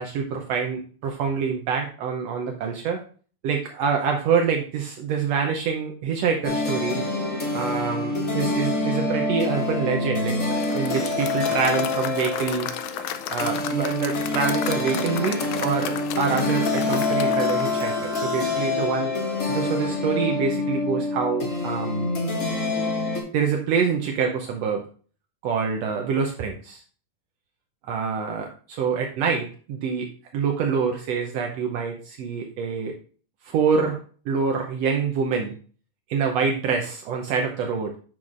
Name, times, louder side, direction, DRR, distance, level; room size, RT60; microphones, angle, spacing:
voice 1, 0.0-3.0 3.4-7.0 7.5-10.4 10.7-12.7 13.3-19.1 19.5-22.1 23.3-24.8 25.4-26.8 27.9-32.9 33.4-34.0 34.3-35.5 36.1-37.9, right 6 dB, 90° right, 2 dB, 1.4 m, -26 dB
sound 1, 6.4-23.2, left 3 dB, 40° left, 1.1 m, -26 dB
Applause / Crowd, 10.4-18.6, left 10 dB, 80° left, 1.8 m, -34 dB
8.7 x 6.2 x 2.5 m, 0.41 s
omnidirectional pair, 3.8 m